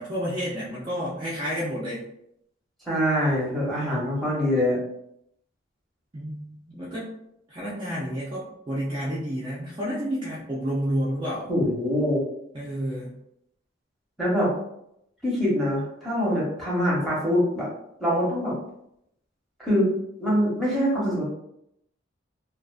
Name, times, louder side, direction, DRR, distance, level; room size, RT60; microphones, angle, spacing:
voice 1, 0.0-2.0 6.1-7.1 7.5-11.5 12.5-13.1, equal, 25° right, -7 dB, 0.4 m, -30 dB
voice 2, 2.9-4.8 11.5-12.2 14.2-14.5 15.2-17.7 18.0-18.5 19.6-19.9 20.2-21.2, equal, ahead, -7 dB, 0.9 m, -24 dB
2.4 x 2.4 x 2.3 m, 0.77 s
head